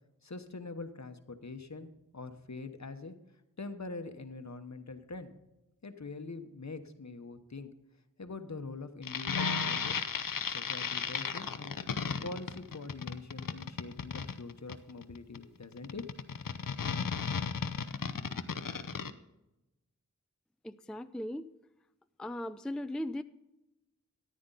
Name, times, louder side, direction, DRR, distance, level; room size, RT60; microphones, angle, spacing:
voice 1, 0.2-3.1 3.6-5.3 5.8-7.7 8.2-10.0 10.4-11.8 12.2-16.1, left 3 dB, 55° left, 9 dB, 1.0 m, -44 dB
sound 1, 9.0-19.1, left 6 dB, 85° left, 0.7 m, -34 dB
voice 2, 20.6-21.5 22.2-23.2, left 1 dB, ahead, 12 dB, 0.4 m, -38 dB
14.0 x 9.5 x 3.9 m, 0.96 s
wide cardioid pair, 55°, 32 cm